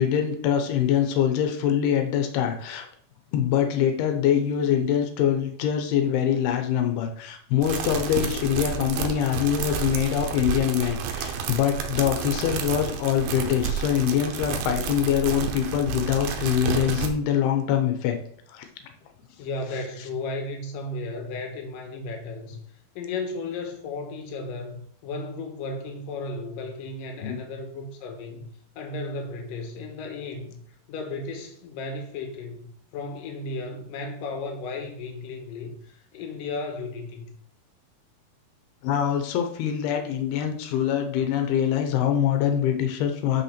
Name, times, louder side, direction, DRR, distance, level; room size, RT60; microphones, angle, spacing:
voice 1, 0.0-2.9 3.3-18.2 18.5-18.7 27.2-27.4 38.8-43.4, left 9 dB, 90° left, 5 dB, 2.9 m, -24 dB
sound 1, 7.6-17.1, right 6 dB, 80° right, 2.7 m, -30 dB
voice 2, 19.4-22.6 22.9-28.4 28.8-30.6 30.9-32.7 32.9-37.3, left 3 dB, 65° left, 3 dB, 2.8 m, -34 dB
6.4 x 5.6 x 5.9 m, 0.63 s
omnidirectional pair, 4.4 m